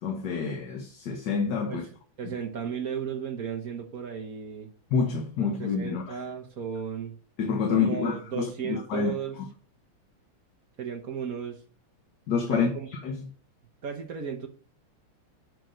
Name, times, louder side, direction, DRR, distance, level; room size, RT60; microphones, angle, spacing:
voice 1, 0.0-1.9 2.2-2.4 4.9-6.2 7.4-9.5 12.3-13.3, left 5 dB, 55° left, 1.5 m, -28 dB
voice 2, 2.2-4.7 5.4-7.2 7.7-9.4 10.8-11.6 12.5-12.9 13.8-14.5, right 7 dB, 50° right, 1.2 m, -35 dB
7.9 x 6.1 x 5.1 m
omnidirectional pair, 2.4 m